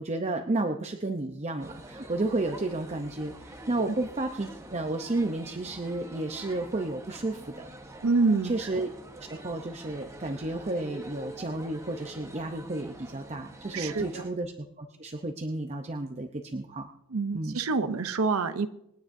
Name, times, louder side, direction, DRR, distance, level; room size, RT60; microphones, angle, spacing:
voice 1, 0.0-7.7 8.4-8.9 9.2-14.5 14.8-16.9 17.3-17.6, right 2 dB, 30° right, 5 dB, 0.7 m, -32 dB
sound 1, 1.6-14.3, right 1 dB, 15° right, 1.1 m, -46 dB
voice 2, 8.0-8.5 13.7-14.2 17.1-18.7, right 4 dB, 70° right, 10 dB, 0.7 m, -26 dB
26.5 x 9.8 x 2.7 m, 0.79 s
head